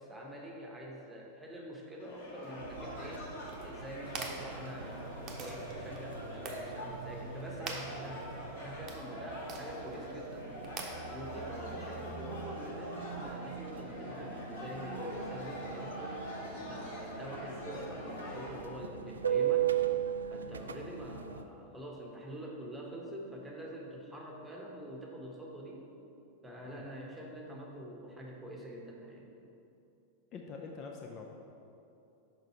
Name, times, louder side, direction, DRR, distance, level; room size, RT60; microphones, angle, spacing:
voice 1, 0.0-3.3 3.6-10.6 11.1-16.2 16.5-19.7 20.3-25.8 26.4-29.3, right 1 dB, 10° right, -1 dB, 1.2 m, -45 dB
sound 1, 2.0-18.6, left 1 dB, 55° left, 1.6 m, -45 dB
sound 2, 2.6-21.4, right 9 dB, 70° right, 0.3 m, -39 dB
sound 3, 3.4-12.4, right 4 dB, 30° right, 0.9 m, -47 dB
voice 2, 30.3-31.2, left 5 dB, 35° left, 1 dB, 0.5 m, -45 dB
6.6 x 5.3 x 4.5 m, 2.8 s
figure-of-eight pair, 90°, 0 cm